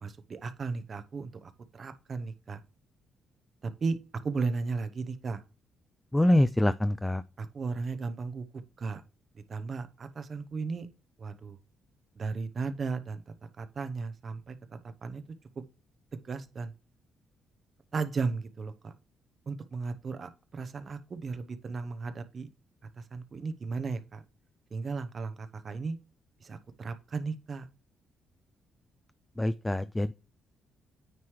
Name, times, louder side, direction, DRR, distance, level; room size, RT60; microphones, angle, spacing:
voice 1, 0.0-2.6 3.6-4.0 4.2-5.4 7.4-8.5 8.8-9.0 9.3-10.9 11.2-11.6 12.2-13.2 13.6-15.2 15.6-15.7 16.1-16.7 17.9-18.9 19.5-22.5 23.1-24.2 24.7-26.0 26.4-27.7, right 4 dB, 45° right, 0.8 m, -35 dB
voice 2, 6.1-7.2 29.4-30.1, left 1 dB, 10° left, 0.3 m, -25 dB
9.3 x 3.2 x 4.7 m
cardioid pair, 90°, 0 cm